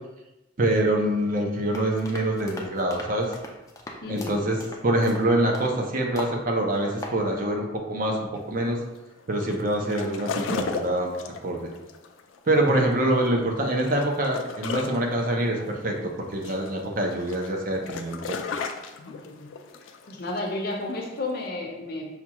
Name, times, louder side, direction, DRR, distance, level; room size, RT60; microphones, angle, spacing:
voice 1, 0.6-3.3 4.1-8.2 8.5-8.8 9.3-11.2 11.4-11.7 12.5-18.4, right 1 dB, 45° right, 1 dB, 0.6 m, -25 dB
sound 1, 1.7-5.8 6.2-6.4 6.8-7.2, left 2 dB, 15° left, 0.4 m, -39 dB
sound 2, 8.4-21.5, left 4 dB, 85° left, 0.4 m, -36 dB
voice 2, 19.1-19.5 20.0-22.1, left 2 dB, 55° left, 1 dB, 0.7 m, -32 dB
5.7 x 2.3 x 2.9 m, 0.99 s
head